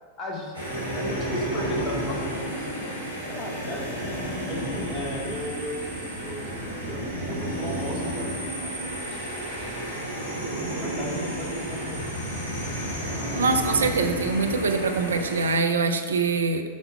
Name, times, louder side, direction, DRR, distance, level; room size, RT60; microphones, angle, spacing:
voice 1, 0.2-2.9 3.3-4.1 4.5-6.6 6.9-7.0 7.3-9.2 9.7-10.3 10.8-12.8, left 1 dB, 25° left, -2 dB, 2.1 m, -37 dB
sound 1, 0.5-15.6, right 1 dB, 85° right, 2.3 m, -31 dB
voice 2, 13.3-16.6, right 4 dB, 70° right, 6 dB, 0.6 m, -24 dB
7.4 x 5.8 x 5.6 m, 1.5 s
figure-of-eight pair, 90°, 0 cm